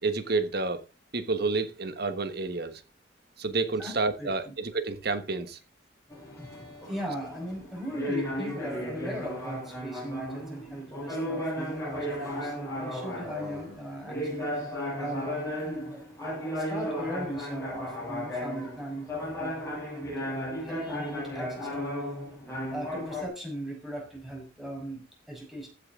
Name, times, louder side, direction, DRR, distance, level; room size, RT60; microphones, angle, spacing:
voice 1, 0.0-0.8 1.1-2.8 3.4-5.6, right 3 dB, 55° right, 1.4 m, -29 dB
voice 2, 3.8-4.5 6.9-14.7 15.0-16.0 16.5-19.1 19.4-22.1 22.7-25.7, right 1 dB, ahead, 5.1 m, -38 dB
sound 1, 6.1-23.3, equal, 15° left, 6.8 m, -35 dB
15.5 x 7.7 x 3.8 m
head